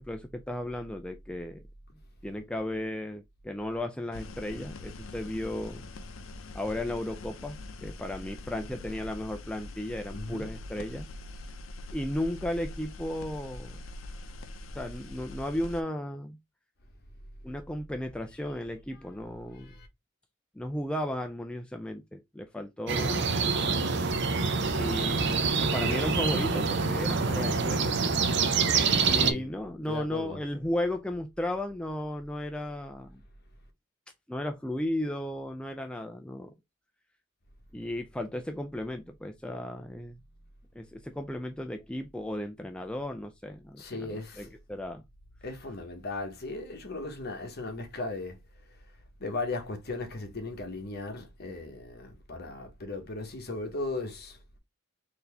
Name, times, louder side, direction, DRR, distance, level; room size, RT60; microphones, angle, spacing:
voice 1, 0.0-1.6 2.2-5.9 6.5-11.1 11.9-13.8 14.7-16.4 17.4-19.7 20.6-23.6 24.7-27.9 29.0-33.2 34.3-36.5 37.7-40.2 40.8-45.0, left 1 dB, 5° left, 0.3 m, -35 dB
sound 1, 4.1-15.8, left 2 dB, 70° left, 0.6 m, -43 dB
voice 2, 10.1-10.5 19.7-19.9 29.1-29.5 29.9-30.4 43.8-44.5 45.4-48.4 49.2-54.4, left 2 dB, 50° left, 1.1 m, -37 dB
sound 2, 22.9-29.3, right 4 dB, 55° right, 0.6 m, -26 dB
4.1 x 2.7 x 3.3 m
head